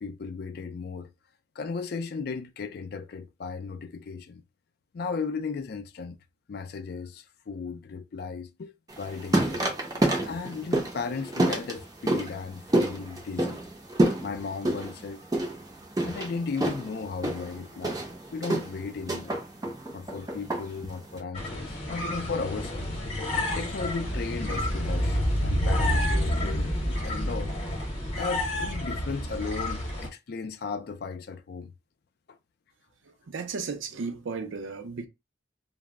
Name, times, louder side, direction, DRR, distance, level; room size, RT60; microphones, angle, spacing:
voice 1, 0.0-1.1 1.6-4.4 4.9-6.2 6.5-9.7 10.2-13.6 14.2-15.3 16.0-18.0 18.3-19.4 19.9-22.8 23.5-27.5 28.2-31.7 32.3-32.4, left 4 dB, 55° left, 0.4 m, -35 dB
sound 1, 8.9-21.2, right 1 dB, 20° right, 0.5 m, -29 dB
sound 2, 21.3-30.1, left 1 dB, 35° left, 0.8 m, -29 dB
voice 2, 33.3-35.1, right 4 dB, 90° right, 0.5 m, -34 dB
2.1 x 2.0 x 3.5 m
head